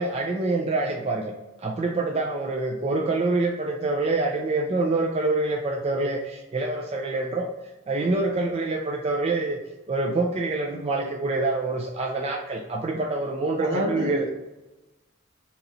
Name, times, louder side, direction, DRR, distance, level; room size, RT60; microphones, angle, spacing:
voice 1, 0.0-1.3 1.6-7.5 7.9-9.6 9.9-14.3, right 2 dB, 30° right, 0 dB, 0.3 m, -26 dB
voice 2, 13.6-14.3, equal, 65° right, 0 dB, 1.0 m, -28 dB
4.0 x 2.9 x 3.9 m, 1.1 s
head